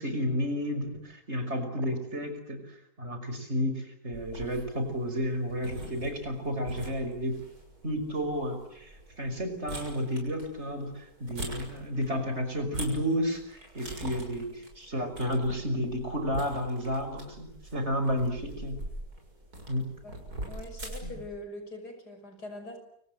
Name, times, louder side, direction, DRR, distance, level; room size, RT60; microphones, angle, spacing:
voice 1, 0.0-7.4 7.8-18.8 19.7-19.9 21.0-21.1, equal, 40° right, 7 dB, 6.0 m, -32 dB
sound 1, 4.1-21.3, right 1 dB, 70° right, 7.1 m, -43 dB
voice 2, 20.5-22.8, left 1 dB, 75° left, 7 dB, 6.4 m, -42 dB
29.5 x 25.5 x 7.9 m, 0.72 s
omnidirectional pair, 1.7 m